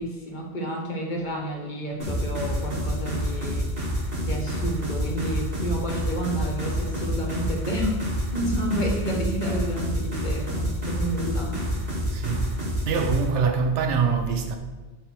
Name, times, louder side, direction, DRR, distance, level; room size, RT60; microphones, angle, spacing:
voice 1, 0.0-3.7 4.2-11.8, right 1 dB, 45° left, 1.1 m, -30 dB
sound 1, 2.0-13.2, equal, 50° right, 2.2 m, -28 dB
voice 2, 12.1-12.6 12.8-14.6, right 5 dB, 75° right, 1.0 m, -24 dB
7.2 x 3.5 x 4.4 m
omnidirectional pair, 1.2 m